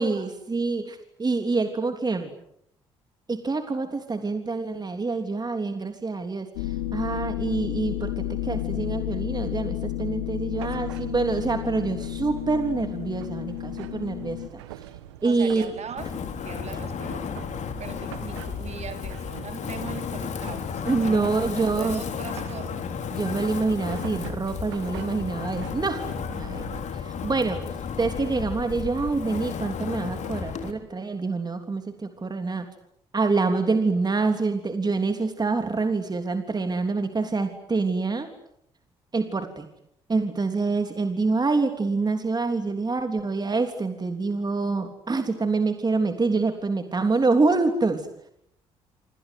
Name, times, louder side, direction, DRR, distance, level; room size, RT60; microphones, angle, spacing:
voice 1, 0.0-2.3 3.3-14.6 15.2-15.7 20.9-22.0 23.1-26.6 26.9-27.6 28.0-32.7 33.1-38.3 39.1-39.7 40.1-48.1, right 3 dB, 30° right, 6 dB, 3.4 m, -26 dB
sound 1, 6.6-14.5, left 14 dB, 85° left, 1.9 m, -31 dB
sound 2, 10.5-26.8, right 12 dB, 85° right, 1.5 m, -44 dB
voice 2, 15.2-16.1 16.4-17.3 17.8-22.9 23.5-23.9, right 6 dB, 50° right, 6 dB, 4.6 m, -40 dB
Wind, 16.0-30.7, left 6 dB, 55° left, 3.8 m, -33 dB
27.0 x 27.0 x 8.1 m, 0.75 s
hypercardioid pair, 50°, 14 cm